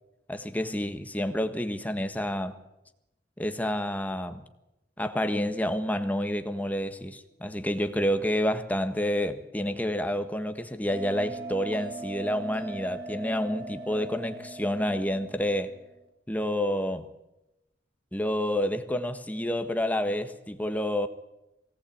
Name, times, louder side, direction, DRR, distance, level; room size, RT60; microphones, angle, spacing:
voice 1, 0.3-2.6 3.4-4.4 5.0-15.8 16.3-17.1 18.1-21.1, equal, 10° left, 1.4 m, -29 dB
Bell, 10.9-16.0, right 3 dB, 30° right, 6.0 m, -40 dB
23.5 x 18.0 x 8.8 m
head